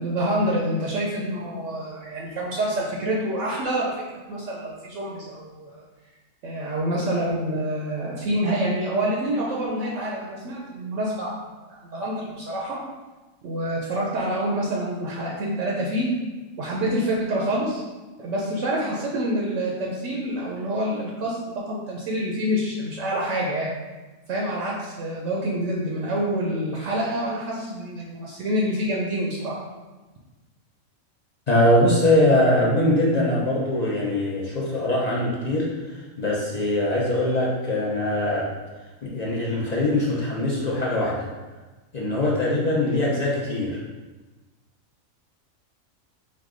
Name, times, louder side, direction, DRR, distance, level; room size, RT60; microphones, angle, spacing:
voice 1, 0.0-3.9 4.3-5.8 6.4-11.4 11.7-12.8 13.4-16.1 16.6-17.8 18.2-21.4 21.7-23.7 24.3-29.6, right 1 dB, 70° right, -3 dB, 1.0 m, -27 dB
voice 2, 31.5-35.7 35.9-38.5 39.0-41.3 41.9-43.8, left 1 dB, 45° left, -5 dB, 0.6 m, -22 dB
4.7 x 2.2 x 3.6 m, 1.2 s
omnidirectional pair, 1.4 m